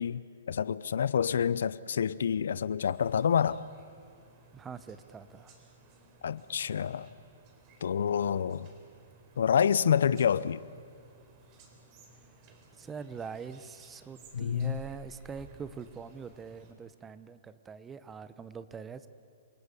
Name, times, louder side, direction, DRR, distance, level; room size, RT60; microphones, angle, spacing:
voice 1, 0.0-3.6 6.2-7.1 7.8-8.7 9.4-10.6 14.3-14.8, left 8 dB, 75° left, 0.6 m, -28 dB
sound 1, 2.8-16.7, right 3 dB, 35° right, 4.0 m, -57 dB
voice 2, 4.5-5.5 12.8-19.1, right 6 dB, 15° right, 0.9 m, -43 dB
28.0 x 18.5 x 8.3 m
hypercardioid pair, 140°, 0 cm